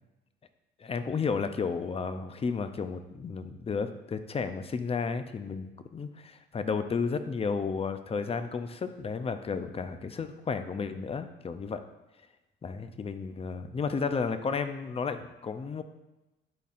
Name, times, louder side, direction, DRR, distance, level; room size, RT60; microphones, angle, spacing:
voice 1, 0.8-11.8 12.6-15.8, left 5 dB, 30° left, 9 dB, 0.5 m, -32 dB
10.5 x 4.1 x 2.5 m, 1.0 s
cardioid pair, 90°, 20 cm